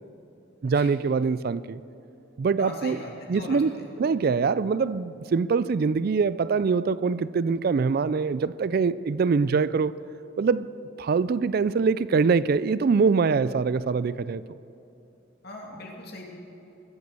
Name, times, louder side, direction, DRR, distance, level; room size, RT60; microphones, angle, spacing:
voice 1, 0.6-1.8 2.4-3.0 3.3-10.0 10.4-10.7 11.0-14.4, right 5 dB, 50° right, 0.4 m, -24 dB
voice 2, 2.6-3.6 15.4-16.3, left 1 dB, 55° left, 2.8 m, -39 dB
21.5 x 8.2 x 6.9 m
head